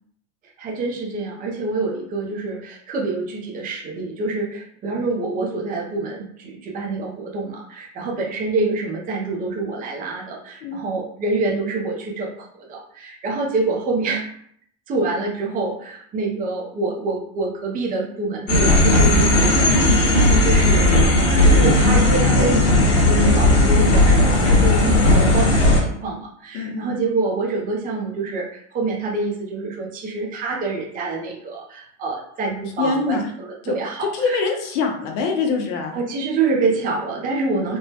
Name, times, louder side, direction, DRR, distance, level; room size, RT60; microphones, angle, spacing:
voice 1, 0.6-14.2 14.9-19.7 20.2-34.4 35.9-37.8, right 3 dB, 25° right, -2 dB, 0.6 m, -26 dB
sound 1, 18.5-25.8, left 1 dB, 40° left, 1.1 m, -15 dB
voice 2, 26.5-27.0 32.8-33.3 33.6-33.8 34.1-36.0 37.6-37.7, left 4 dB, 80° left, 2 dB, 0.8 m, -24 dB
3.5 x 2.1 x 2.8 m, 0.66 s
supercardioid pair, 130°, 35 cm